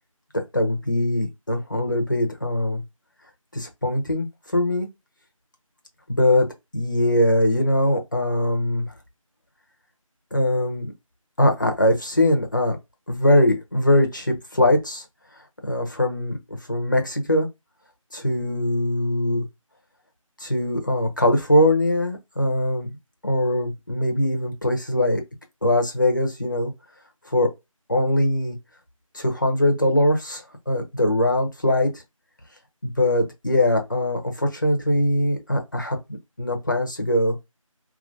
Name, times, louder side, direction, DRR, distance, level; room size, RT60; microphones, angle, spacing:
voice 1, 0.3-2.8 3.5-4.3 4.5-4.9 6.1-6.5 6.7-8.9 10.3-10.9 11.4-12.8 13.1-15.0 15.6-17.5 18.1-19.4 20.4-22.9 23.2-25.2 25.6-26.7 27.3-27.5 27.9-28.6 29.1-32.0 32.8-36.0 36.4-37.4, left 1 dB, 35° left, 0.8 m, -21 dB
3.8 x 2.9 x 2.6 m
figure-of-eight pair, 170°, 18 cm